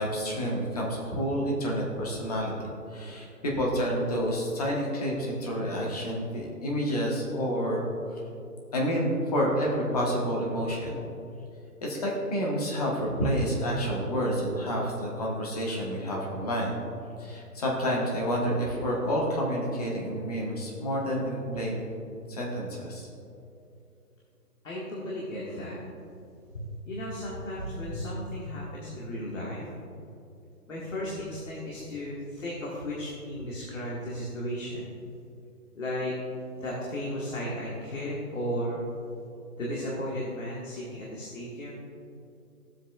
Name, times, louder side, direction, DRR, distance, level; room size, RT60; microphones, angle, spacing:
voice 1, 0.0-7.8 8.1-8.2 8.7-11.0 11.8-16.8 17.2-21.9 22.3-23.1, equal, 25° left, -2 dB, 1.2 m, -29 dB
voice 2, 24.6-25.8 26.5-29.7 30.7-34.9 35.7-36.1 36.6-38.8 39.6-41.7, equal, 50° left, -5 dB, 1.9 m, -34 dB
13.5 x 7.7 x 2.4 m, 2.7 s
hypercardioid pair, 160°, 47 cm